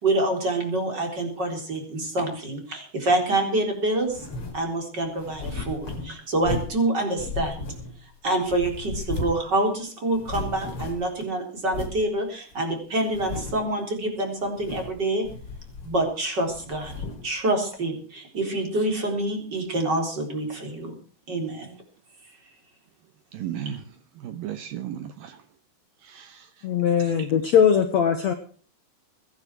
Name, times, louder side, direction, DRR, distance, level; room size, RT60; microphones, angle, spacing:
voice 1, 0.0-4.3 4.5-7.7 8.2-15.2 15.8-16.9 17.2-20.9 21.3-21.7, right 2 dB, 25° right, 4.1 m, -26 dB
sound 1, 4.1-4.6 5.2-6.8 7.2-8.1 8.5-9.5 9.7-9.8 10.1-11.2 11.7-12.0 12.5-12.6 13.1-13.7 14.5-15.0 15.2-16.1 16.5-17.3, left 3 dB, 35° left, 4.0 m, -35 dB
voice 2, 23.3-23.8 24.2-25.4 26.0-26.5 27.0-27.3, right 10 dB, 70° right, 2.5 m, -35 dB
voice 3, 26.6-28.3, left 8 dB, 60° left, 1.9 m, -20 dB
22.5 x 10.5 x 4.6 m
omnidirectional pair, 4.7 m